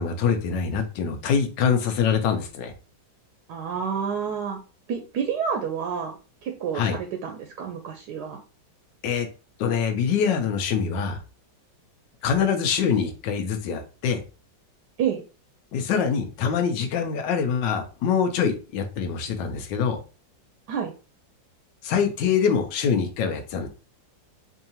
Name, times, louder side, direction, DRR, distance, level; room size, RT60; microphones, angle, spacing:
voice 1, 0.0-2.7 6.7-7.0 9.0-9.3 9.6-11.2 12.2-14.2 15.7-20.0 21.8-23.7, left 6 dB, 80° left, 6 dB, 1.4 m, -24 dB
voice 2, 3.5-4.6 4.9-6.2 6.4-8.4 15.0-15.2 20.7-20.9, right 7 dB, 75° right, 4 dB, 1.1 m, -29 dB
4.7 x 2.7 x 2.8 m, 0.34 s
omnidirectional pair, 2.0 m